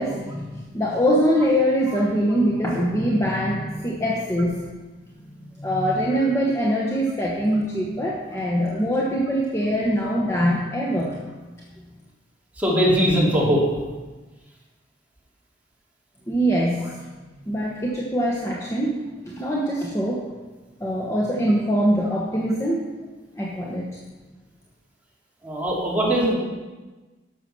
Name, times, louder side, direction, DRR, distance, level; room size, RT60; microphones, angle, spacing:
voice 1, 0.0-4.6 5.6-11.2 16.3-16.9 17.2-20.2 20.8-22.8 23.4-23.8, equal, 15° left, -3 dB, 1.2 m, -23 dB
voice 2, 12.6-13.6 25.4-26.4, equal, 10° right, -6 dB, 3.2 m, -20 dB
11.5 x 6.9 x 6.2 m, 1.2 s
head